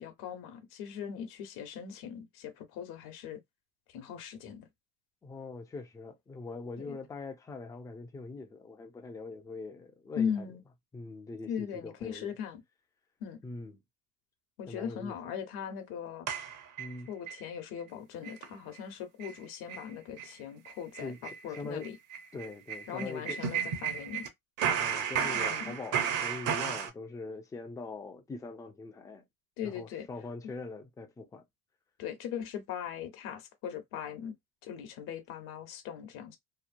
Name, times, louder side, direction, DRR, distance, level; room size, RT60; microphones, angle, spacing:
voice 1, 0.0-3.4 3.9-4.7 6.8-7.0 10.2-10.6 11.5-12.6 13.2-13.4 14.6-16.3 17.1-22.0 22.9-24.3 25.2-25.7 29.6-30.1 32.0-34.3 34.6-36.4, left 8 dB, 60° left, 1.0 m, -39 dB
voice 2, 5.2-10.5 10.9-12.3 13.4-13.8 14.7-15.2 16.8-17.1 21.0-21.2 21.6-21.9 22.3-23.4 24.8-29.2 29.6-31.4, left 3 dB, 10° left, 0.4 m, -42 dB
sound 1, 16.3-17.4 17.8-17.9 18.2-18.5 18.7-18.8 19.2-19.4 19.7-19.9 20.2-20.3 20.6-24.3 24.6-26.9, right 8 dB, 45° right, 0.8 m, -33 dB
2.9 x 2.0 x 2.5 m
supercardioid pair, 120°, 41 cm